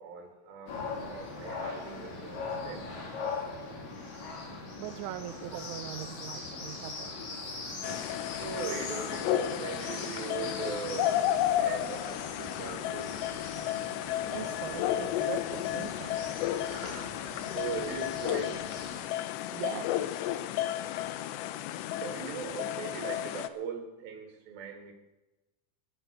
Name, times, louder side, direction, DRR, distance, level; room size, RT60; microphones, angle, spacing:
voice 1, 0.0-2.8 8.4-11.2 11.6-13.1 16.6-18.6 22.0-24.9, right 6 dB, 55° right, 4 dB, 3.9 m, -40 dB
sound 1, 0.7-19.0, left 3 dB, 50° left, 3.7 m, -41 dB
voice 2, 4.8-7.1 7.9-8.1 14.0-16.2 19.5-20.0, right 13 dB, 80° right, 8 dB, 2.9 m, -41 dB
sound 2, 7.8-23.5, left 12 dB, 90° left, 2.5 m, -33 dB
14.5 x 12.0 x 7.1 m, 1.0 s
omnidirectional pair, 5.8 m